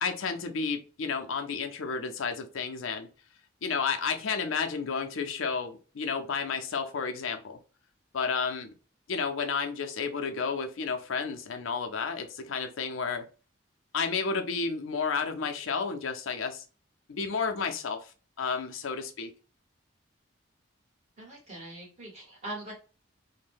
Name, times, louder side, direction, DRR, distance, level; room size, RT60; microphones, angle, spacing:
voice 1, 0.0-3.1 3.6-7.6 8.1-8.7 9.1-13.3 13.9-16.6 17.1-18.1 18.4-19.3, left 5 dB, 85° left, 5 dB, 0.5 m, -31 dB
voice 2, 21.2-22.7, right 1 dB, 35° right, -3 dB, 1.3 m, -41 dB
2.5 x 2.1 x 3.4 m, 0.36 s
head